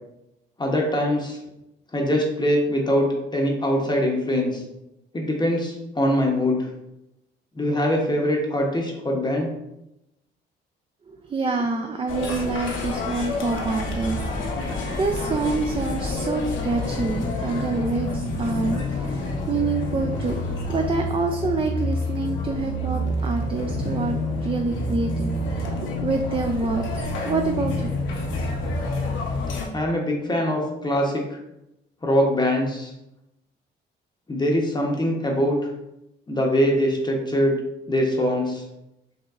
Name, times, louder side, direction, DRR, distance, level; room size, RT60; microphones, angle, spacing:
voice 1, 0.6-1.4 1.9-3.1 3.3-4.6 5.1-6.7 7.6-9.5 29.7-31.2 32.0-32.9 34.3-35.6 36.3-37.6 37.9-38.6, equal, 20° left, 0 dB, 0.8 m, -22 dB
voice 2, 11.1-20.4 20.7-27.9, right 4 dB, 30° right, 4 dB, 0.4 m, -27 dB
sound 1, 12.1-29.7, left 2 dB, 75° left, 0.9 m, -28 dB
5.3 x 2.9 x 2.4 m, 0.88 s
cardioid pair, 90°, 20 cm